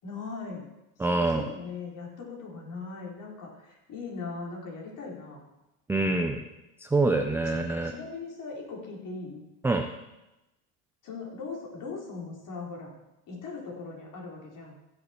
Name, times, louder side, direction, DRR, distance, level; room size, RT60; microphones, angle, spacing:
voice 1, 0.0-0.7 1.1-5.4 7.4-9.4 11.0-12.9 13.3-14.8, left 4 dB, 40° left, -2 dB, 4.0 m, -39 dB
voice 2, 1.0-1.4 5.9-6.4 6.9-7.9 9.6-9.9, right 2 dB, 5° right, 5 dB, 0.4 m, -25 dB
15.5 x 6.9 x 4.4 m, 0.96 s
supercardioid pair, 110°, 47 cm